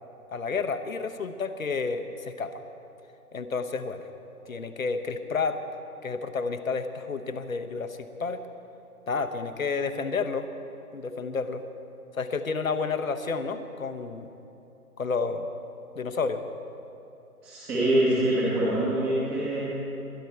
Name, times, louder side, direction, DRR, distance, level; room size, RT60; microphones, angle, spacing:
voice 1, 0.3-2.5 3.3-4.0 4.5-5.6 6.0-8.4 9.1-10.5 10.9-11.6 12.1-14.3 15.0-15.5 15.9-16.4, left 4 dB, 65° left, 8 dB, 1.1 m, -30 dB
voice 2, 17.4-19.6, right 1 dB, 5° right, -8 dB, 0.8 m, -24 dB
22.0 x 10.5 x 4.4 m, 2.9 s
figure-of-eight pair, 140°, 45 cm